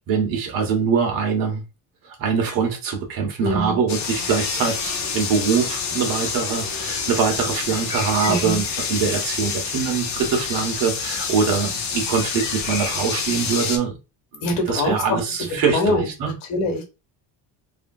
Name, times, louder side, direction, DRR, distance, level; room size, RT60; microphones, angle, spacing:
voice 1, 0.0-1.6 2.0-8.6 8.9-14.0 14.3-16.3, right 6 dB, 55° right, 1.3 m, -23 dB
voice 2, 3.4-3.8 8.3-8.6 14.4-15.2 15.7-16.8, left 2 dB, 85° left, 1.4 m, -24 dB
sound 1, 3.9-13.8, left 5 dB, 45° left, 0.8 m, -27 dB
3.1 x 2.6 x 2.3 m
cardioid pair, 125°, 41 cm